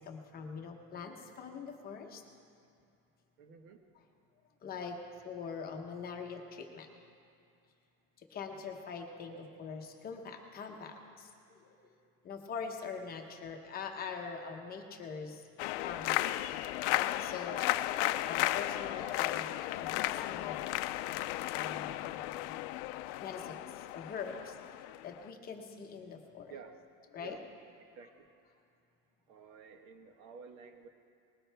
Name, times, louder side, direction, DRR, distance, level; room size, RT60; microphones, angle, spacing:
voice 1, 0.0-2.2 3.9-4.0 4.6-5.0 5.2-6.9 8.2-11.9 12.2-15.5 15.8-16.5 16.8-17.8 18.2-20.7 21.5-22.6 23.2-26.5 27.1-27.4 28.0-28.1, left 5 dB, 25° left, 3 dB, 0.9 m, -44 dB
voice 2, 3.4-3.8 26.5-26.8 27.2-27.4 28.0-28.3 29.3-30.9, right 6 dB, 75° right, 6 dB, 1.4 m, -51 dB
sound 1, 15.6-25.3, left 16 dB, 60° left, 0.5 m, -34 dB
20.0 x 17.0 x 3.4 m, 2.4 s
cardioid pair, 175°, 39 cm